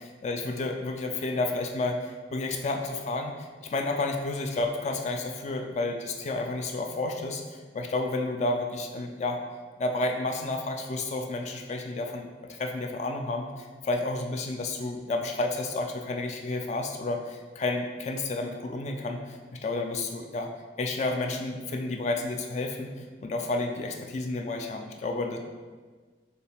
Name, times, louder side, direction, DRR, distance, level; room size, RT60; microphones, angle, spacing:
voice 1, 0.2-9.4 9.8-20.5 20.8-22.9 23.2-25.4, left 2 dB, 40° left, 3 dB, 0.3 m, -31 dB
6.8 x 2.3 x 3.4 m, 1.4 s
head